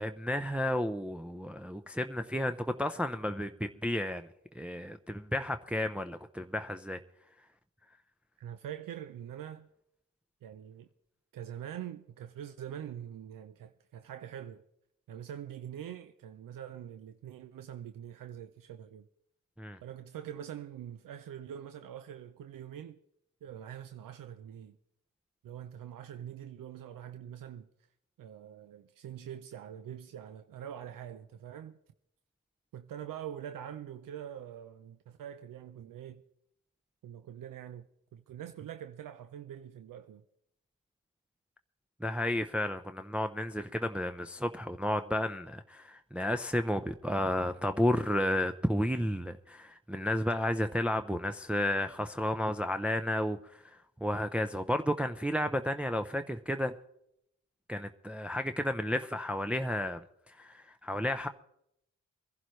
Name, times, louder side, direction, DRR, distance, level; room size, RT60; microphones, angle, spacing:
voice 1, 0.0-4.3 4.5-7.0 19.6-19.8 42.0-56.7 57.7-60.0 60.3-61.3, left 1 dB, 5° right, 0.6 m, -32 dB
voice 2, 8.4-9.7 10.4-10.9 11.3-14.6 15.1-19.1 19.8-23.0 23.4-24.8 25.4-27.7 28.2-31.8 32.7-36.2 37.0-40.2, right 10 dB, 80° right, 0.6 m, -44 dB
22.5 x 11.0 x 3.2 m
cardioid pair, 55°, 33 cm